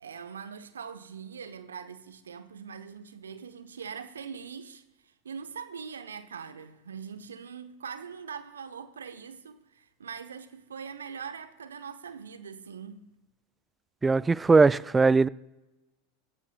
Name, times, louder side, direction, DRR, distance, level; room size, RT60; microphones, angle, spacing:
voice 1, 0.0-4.8 5.2-13.0, right 6 dB, 75° right, 0.8 m, -42 dB
voice 2, 14.0-15.3, right 4 dB, 15° right, 0.3 m, -20 dB
22.0 x 11.0 x 2.3 m
figure-of-eight pair, 85°, 0 cm